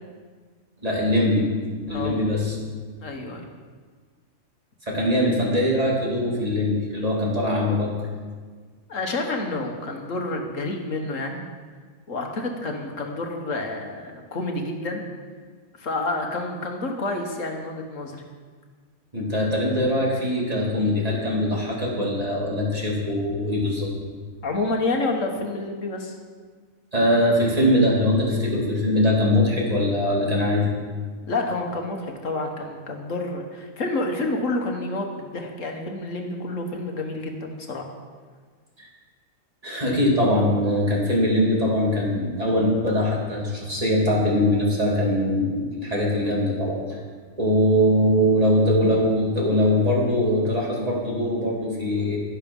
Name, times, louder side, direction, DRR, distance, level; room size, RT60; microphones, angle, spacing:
voice 1, 0.8-1.5 1.9-2.6 4.9-7.9 19.1-23.9 26.9-30.6 38.8-38.9 39.6-47.0 47.4-52.2, left 1 dB, 25° right, -3 dB, 2.9 m, -22 dB
voice 2, 1.9-2.2 3.0-3.5 8.9-11.4 12.1-15.0 15.8-18.2 24.4-26.2 31.3-37.8, left 2 dB, 65° left, 2 dB, 1.8 m, -29 dB
12.5 x 11.0 x 5.5 m, 1.5 s
omnidirectional pair, 1.4 m